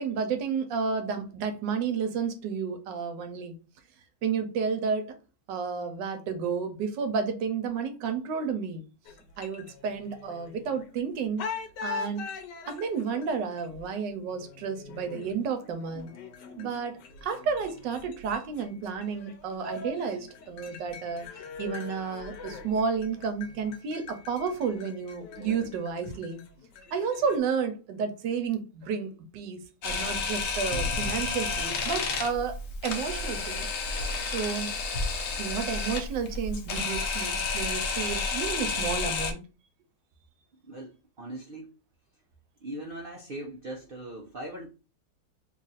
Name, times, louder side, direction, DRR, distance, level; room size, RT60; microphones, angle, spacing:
voice 1, 0.0-3.6 4.2-5.2 5.5-8.8 9.4-11.5 11.8-12.2 12.7-16.1 16.6-21.3 21.6-26.4 26.9-33.7 34.2-34.7 35.4-39.4, right 6 dB, 90° right, 1.4 m, -31 dB
sound 1, 9.1-11.0 11.4-27.4, left 4 dB, 80° left, 1.3 m, -43 dB
Camera, 29.8-39.3, left 4 dB, 60° left, 0.9 m, -31 dB
voice 2, 40.7-41.7 42.6-44.7, right 1 dB, 65° right, 0.5 m, -40 dB
3.3 x 2.5 x 4.0 m
omnidirectional pair, 1.9 m